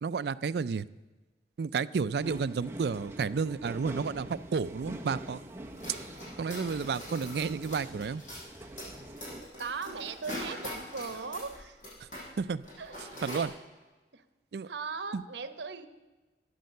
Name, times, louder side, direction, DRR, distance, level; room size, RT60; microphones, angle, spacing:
voice 1, 0.0-0.9 1.6-5.4 6.4-8.2 12.4-12.6 13.2-13.5 14.5-14.7 15.1-15.2, right 5 dB, 65° right, 15 dB, 0.4 m, -31 dB
sound 1, 2.2-9.4, right 1 dB, 15° right, 0.9 m, -44 dB
sound 2, 5.6-12.3 12.5-13.5, left 1 dB, 45° left, 6.0 m, -42 dB
voice 2, 9.6-11.8 12.8-13.0 14.1-14.2 14.7-15.9, right 5 dB, 85° right, 11 dB, 0.9 m, -38 dB
13.5 x 9.4 x 6.5 m, 1.2 s
head